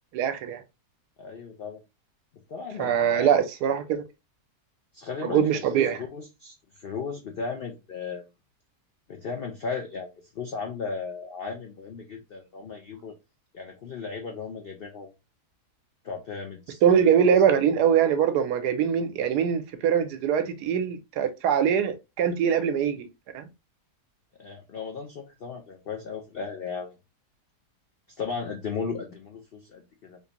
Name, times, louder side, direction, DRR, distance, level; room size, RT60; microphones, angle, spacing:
voice 1, 0.1-0.6 2.8-4.0 5.3-6.0 16.8-23.1 23.3-23.5, right 8 dB, 85° right, 1.2 m, -23 dB
voice 2, 1.2-1.8 2.5-3.3 4.9-8.2 9.1-13.1 13.5-15.1 16.0-16.8 24.4-27.0 28.1-30.2, left 5 dB, 85° left, 0.5 m, -36 dB
3.6 x 2.6 x 2.8 m
omnidirectional pair, 1.7 m